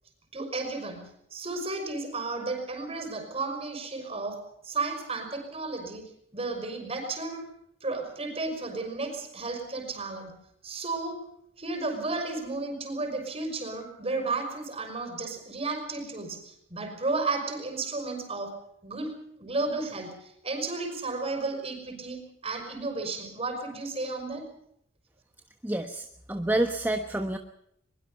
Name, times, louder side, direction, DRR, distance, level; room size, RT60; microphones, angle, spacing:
voice 1, 0.3-7.5 7.8-11.3 11.6-24.5, right 3 dB, 30° right, 6 dB, 5.9 m, -33 dB
voice 2, 25.6-27.4, right 1 dB, 10° right, 5 dB, 1.2 m, -28 dB
22.5 x 22.0 x 5.6 m, 0.72 s
head